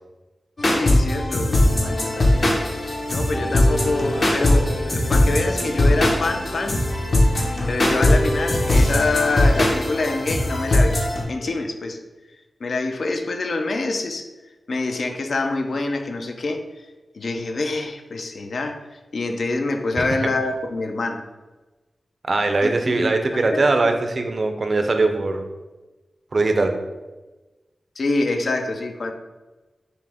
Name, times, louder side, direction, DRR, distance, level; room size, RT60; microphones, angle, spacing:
sound 1, 0.6-11.2, left 1 dB, 50° left, 0.8 m, -20 dB
voice 1, 0.7-2.5 3.1-6.8 7.7-11.0 11.3-12.0 12.6-14.3 14.7-16.6 17.1-21.2 22.6-23.9 28.0-29.1, left 3 dB, 65° left, 5 dB, 0.5 m, -26 dB
voice 2, 22.3-25.4 26.3-26.7, right 3 dB, 50° right, 5 dB, 0.5 m, -21 dB
5.6 x 2.1 x 3.5 m, 1.2 s
wide cardioid pair, 90°, 0 cm